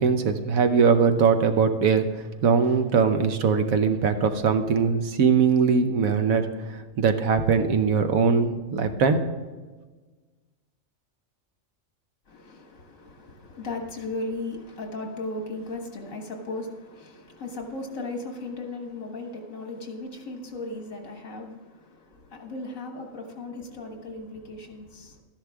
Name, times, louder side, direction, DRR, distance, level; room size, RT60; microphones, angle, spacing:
voice 1, 0.0-9.2, right 5 dB, 90° right, 1.3 m, -21 dB
voice 2, 12.3-25.2, left 2 dB, 75° left, 1.9 m, -36 dB
12.5 x 10.5 x 3.5 m
omnidirectional pair, 1.4 m